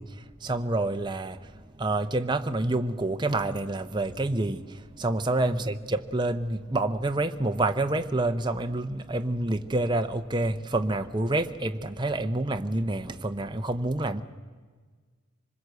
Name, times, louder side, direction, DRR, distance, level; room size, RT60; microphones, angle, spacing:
voice 1, 0.0-14.2, right 2 dB, 20° right, 0.8 m, -28 dB
25.0 x 21.0 x 8.0 m
head